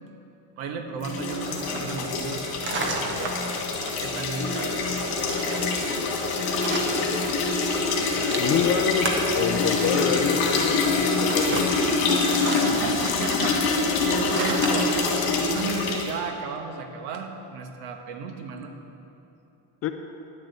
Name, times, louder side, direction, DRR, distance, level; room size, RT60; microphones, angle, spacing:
voice 1, 0.6-3.4 4.0-4.8 12.5-13.6 14.0-14.9 15.3-18.8, right 5 dB, 85° right, 5 dB, 1.4 m, -34 dB
sound 1, 1.0-16.1, left 3 dB, 50° left, 2.2 m, -25 dB
sound 2, 1.4-7.5 7.8-15.2, right 3 dB, 25° right, 1.0 m, -35 dB
voice 2, 8.2-11.9 19.8-19.9, left 7 dB, 35° left, 7 dB, 0.4 m, -27 dB
11.0 x 6.7 x 8.1 m, 3.0 s
cardioid pair, 170°, 46 cm